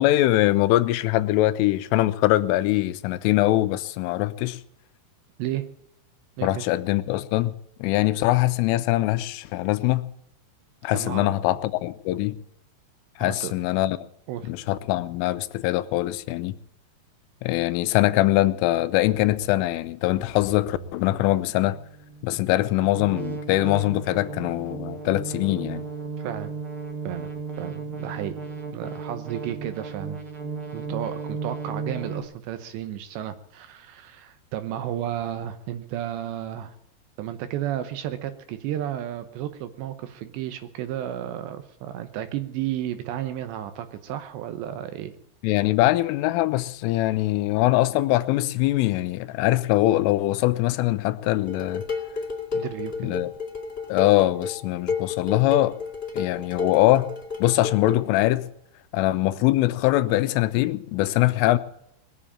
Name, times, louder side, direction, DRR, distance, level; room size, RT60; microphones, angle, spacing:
voice 1, 0.0-4.6 6.4-7.5 7.8-10.0 10.8-12.4 13.2-14.0 14.4-16.6 17.4-21.8 22.2-25.8 45.4-51.8 53.0-53.3 53.9-55.8 56.1-57.1 57.4-58.5 58.9-61.6, left 16 dB, 85° left, 3.3 m, -22 dB
voice 2, 10.9-11.4 13.2-13.5 14.3-14.5 26.2-26.5 27.0-27.3 27.6-28.5 28.7-30.2 30.7-36.7 37.2-45.1 52.5-53.3, right 11 dB, 75° right, 2.8 m, -32 dB
sound 1, 19.0-32.2, right 4 dB, 55° right, 1.5 m, -36 dB
Dishes pots and pans, 51.5-58.1, left 5 dB, 15° left, 2.0 m, -32 dB
21.0 x 7.6 x 8.6 m
omnidirectional pair, 5.7 m